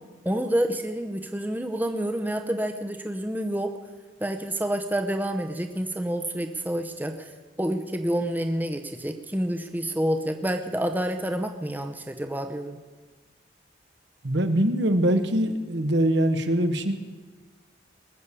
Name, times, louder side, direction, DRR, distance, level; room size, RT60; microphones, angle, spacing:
voice 1, 0.2-3.7 4.2-7.3 7.6-12.8, right 1 dB, 10° right, 5 dB, 0.7 m, -28 dB
voice 2, 14.2-16.9, right 1 dB, 70° right, 8 dB, 1.2 m, -23 dB
20.5 x 7.2 x 8.3 m, 1.3 s
head